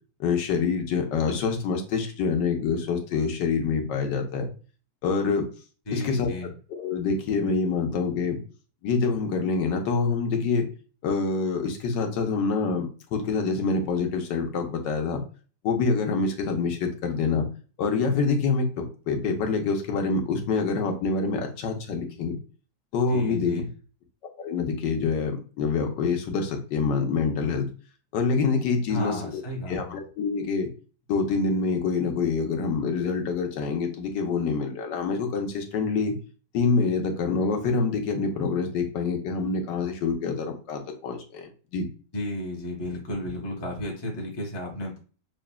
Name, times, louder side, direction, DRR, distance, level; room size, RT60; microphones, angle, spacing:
voice 1, 0.2-4.5 5.0-5.4 5.9-6.3 6.7-8.4 8.8-10.7 11.0-15.2 15.6-17.5 17.8-22.4 22.9-23.6 24.4-27.7 28.1-29.4 29.7-30.7 31.1-36.2 36.5-41.9, left 4 dB, 90° left, 4 dB, 1.4 m, -26 dB
voice 2, 5.9-6.5 23.1-23.7 28.9-30.0 42.1-45.0, left 1 dB, 20° left, -1 dB, 0.7 m, -33 dB
6.0 x 2.4 x 2.2 m, 0.37 s
omnidirectional pair, 1.9 m